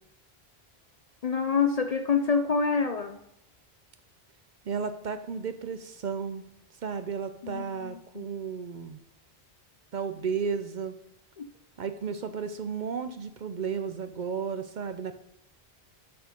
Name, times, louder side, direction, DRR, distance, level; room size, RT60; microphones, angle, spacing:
voice 1, 1.2-3.2 7.4-8.3 11.4-11.5, left 5 dB, 50° left, 8 dB, 0.5 m, -27 dB
voice 2, 4.7-6.4 6.8-9.0 9.9-10.9 11.8-15.2, right 6 dB, 55° right, 10 dB, 0.6 m, -33 dB
9.2 x 4.5 x 5.1 m, 0.83 s
omnidirectional pair, 1.1 m